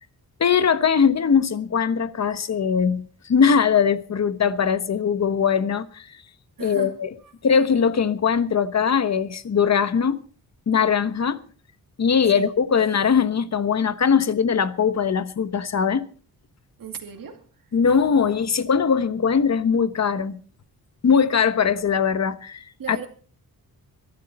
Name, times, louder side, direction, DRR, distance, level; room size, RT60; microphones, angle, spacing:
voice 1, 0.4-6.1 6.6-7.1 7.4-10.2 10.7-11.4 12.0-16.0 17.7-20.4 21.0-23.1, left 6 dB, 45° left, 1.1 m, -21 dB
voice 2, 6.6-7.3 12.3-12.6 16.8-17.7 22.8-23.1, right 7 dB, 60° right, 2.4 m, -38 dB
22.0 x 12.0 x 4.3 m
wide cardioid pair, 165°, 37 cm